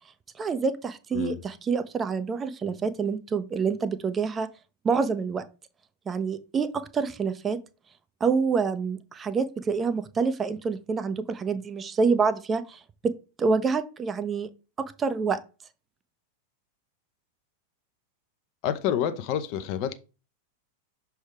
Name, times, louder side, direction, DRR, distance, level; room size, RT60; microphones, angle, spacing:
voice 1, 0.4-4.5 4.8-5.5 6.1-7.6 8.2-14.5 14.8-15.4, right 5 dB, 20° right, 0.6 m, -27 dB
voice 2, 18.6-19.9, left 9 dB, 45° left, 0.6 m, -28 dB
6.3 x 3.4 x 4.5 m
figure-of-eight pair, 90°, 0 cm